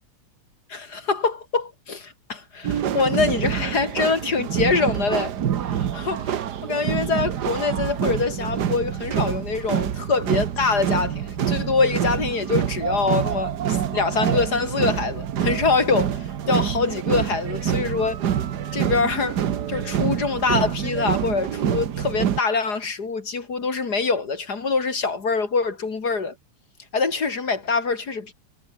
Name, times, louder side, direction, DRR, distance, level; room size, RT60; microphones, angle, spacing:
voice 1, 0.7-5.3 5.7-18.2 18.7-19.4 19.7-26.3 26.9-28.3, left 4 dB, 35° left, 2.4 m, -24 dB
sound 1, 2.6-22.4, right 9 dB, 60° right, 1.0 m, -26 dB
omnidirectional pair, 3.3 m